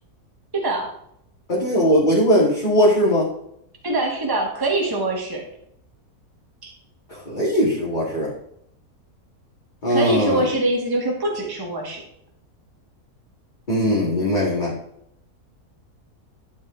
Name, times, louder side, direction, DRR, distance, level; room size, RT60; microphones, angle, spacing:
voice 1, 0.5-0.9 3.8-5.4 6.6-6.7 9.9-12.0, right 2 dB, 15° right, 0 dB, 1.5 m, -24 dB
voice 2, 1.5-3.3 7.1-8.3 9.8-10.5 13.7-14.7, equal, 30° left, -6 dB, 2.1 m, -19 dB
11.5 x 5.3 x 3.8 m, 0.73 s
omnidirectional pair, 1.6 m